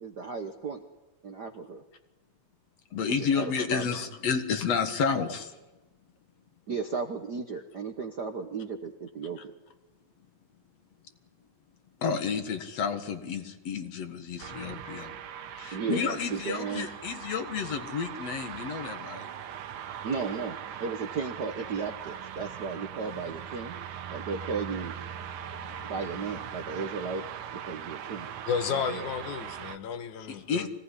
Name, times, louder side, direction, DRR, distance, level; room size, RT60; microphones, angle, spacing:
voice 1, 0.0-0.8 1.2-1.8 3.2-4.0 6.7-9.5 15.7-16.9 20.0-23.8 24.1-24.9 25.8-27.2 27.5-28.4 28.7-29.1, right 5 dB, 55° right, 1.1 m, -35 dB
voice 2, 2.9-5.5 12.0-15.1 15.6-19.3 30.3-30.7, left 6 dB, 60° left, 2.7 m, -31 dB
sound 1, 14.4-29.8, right 9 dB, 85° right, 2.7 m, -40 dB
voice 3, 28.5-30.7, left 7 dB, 80° left, 2.7 m, -32 dB
25.0 x 18.0 x 10.0 m
omnidirectional pair, 3.4 m